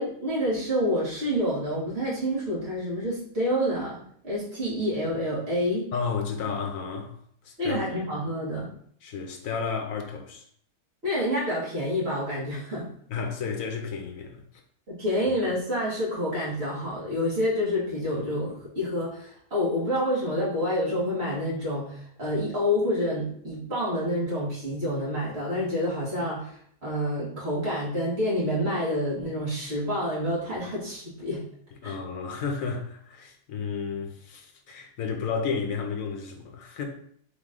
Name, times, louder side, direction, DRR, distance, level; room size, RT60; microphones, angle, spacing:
voice 1, 0.0-5.8 7.6-8.7 11.0-12.9 14.9-26.5 26.8-31.4 31.8-32.0, equal, 40° right, 2.0 m, -28 dB
voice 2, 5.9-7.2 7.4-8.0 9.0-10.4 13.1-14.4 31.8-36.8, left 5 dB, 65° left, 1.0 m, -32 dB
4.0 x 3.1 x 3.6 m
omnidirectional pair, 1.8 m